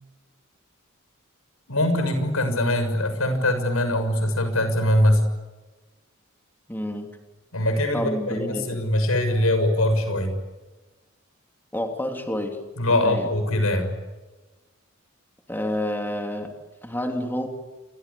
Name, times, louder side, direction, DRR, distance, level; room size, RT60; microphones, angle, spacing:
voice 1, 1.7-5.2 7.5-10.4 12.8-13.9, left 1 dB, 90° left, 9 dB, 6.8 m, -22 dB
voice 2, 6.7-7.1 7.9-8.8 11.7-12.6 12.9-13.3 15.5-16.5 16.8-17.5, left 1 dB, 10° left, 3 dB, 3.2 m, -29 dB
29.0 x 24.0 x 8.6 m, 1.2 s
head